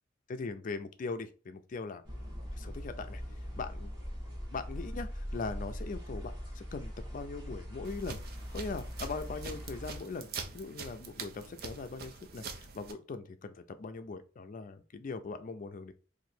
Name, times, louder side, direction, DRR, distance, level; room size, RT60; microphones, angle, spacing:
voice 1, 0.3-2.0 2.6-3.2 3.6-3.9 4.5-8.2 8.5-10.3 10.5-15.9, left 4 dB, 45° left, 9 dB, 0.4 m, -40 dB
sound 1, 2.0-10.0, equal, 25° right, 1.4 m, -41 dB
sound 2, 7.8-12.9, right 5 dB, 55° right, 0.6 m, -45 dB
2.9 x 2.5 x 4.2 m, 0.37 s
head